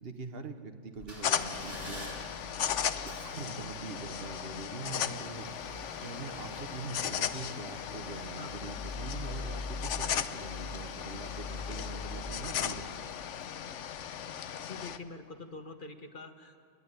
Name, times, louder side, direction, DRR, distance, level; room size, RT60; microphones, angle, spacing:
voice 1, 0.0-2.1 3.0-5.5 6.0-13.1, right 3 dB, 55° right, 7 dB, 1.4 m, -43 dB
sound 1, 1.0-13.4 13.9-14.0, left 2 dB, 80° right, 5.3 m, -44 dB
sound 2, 1.2-15.0, left 9 dB, 85° left, 1.1 m, -37 dB
voice 2, 14.6-16.6, left 3 dB, 45° left, 7 dB, 1.2 m, -45 dB
29.0 x 11.0 x 9.7 m, 2.4 s
omnidirectional pair, 1.2 m